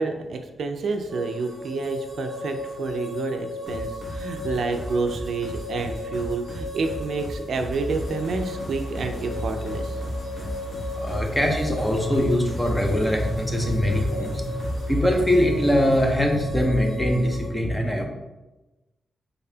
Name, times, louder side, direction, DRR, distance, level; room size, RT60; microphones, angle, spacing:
voice 1, 0.0-10.0, right 4 dB, 60° right, 5 dB, 0.4 m, -29 dB
sound 1, 1.1-17.5, left 2 dB, 20° right, 1.1 m, -36 dB
sound 2, 3.7-14.9, left 1 dB, 45° left, 0.9 m, -37 dB
sound 3, 7.7-16.2, right 1 dB, 75° left, 0.9 m, -35 dB
voice 2, 11.0-14.5 14.8-18.0, equal, 10° left, 2 dB, 0.5 m, -22 dB
4.0 x 3.5 x 2.7 m, 1.1 s
wide cardioid pair, 135°, 0 cm